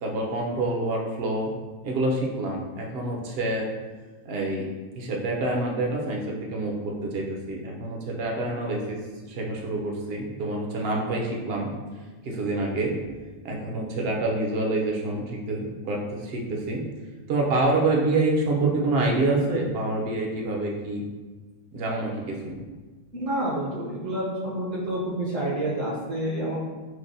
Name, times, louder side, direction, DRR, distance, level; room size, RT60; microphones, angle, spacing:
voice 1, 0.0-1.5 1.8-3.7 4.2-4.7 4.9-9.0 9.3-11.7 12.2-13.2 13.4-16.8 17.3-21.0 21.7-22.7, right 2 dB, 55° right, -1 dB, 0.8 m, -27 dB
voice 2, 23.1-26.5, right 1 dB, 75° right, -8 dB, 1.3 m, -28 dB
6.0 x 2.1 x 2.6 m, 1.3 s
omnidirectional pair, 1.3 m